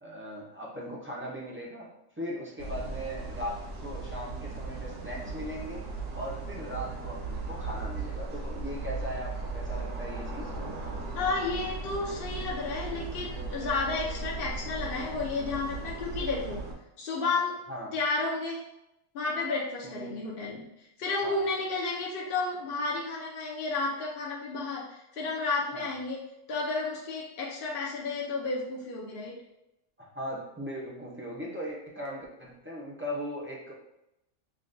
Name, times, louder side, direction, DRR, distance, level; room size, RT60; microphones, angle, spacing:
voice 1, 0.0-1.9 2.2-5.8 6.1-10.5 17.7-17.9 19.8-20.2 21.2-21.4 25.7-25.9 30.0-33.7, equal, 15° right, -5 dB, 0.4 m, -38 dB
sound 1, 2.6-16.7, right 3 dB, 65° right, 1.1 m, -37 dB
voice 2, 11.1-16.6 17.0-17.6 17.9-18.7 19.1-20.7 21.0-29.4, left 3 dB, 55° left, -3 dB, 0.7 m, -32 dB
5.6 x 2.2 x 2.6 m, 0.88 s
omnidirectional pair, 1.4 m